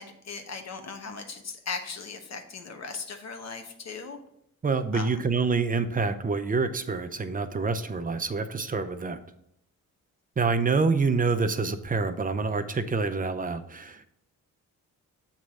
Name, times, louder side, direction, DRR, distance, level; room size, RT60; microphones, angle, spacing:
voice 1, 0.0-4.2 4.9-5.1, left 4 dB, 50° left, 6 dB, 1.1 m, -38 dB
voice 2, 4.6-9.2 10.4-14.1, right 4 dB, 25° right, 9 dB, 0.5 m, -27 dB
7.3 x 3.2 x 6.1 m, 0.78 s
cardioid pair, 105°, 33 cm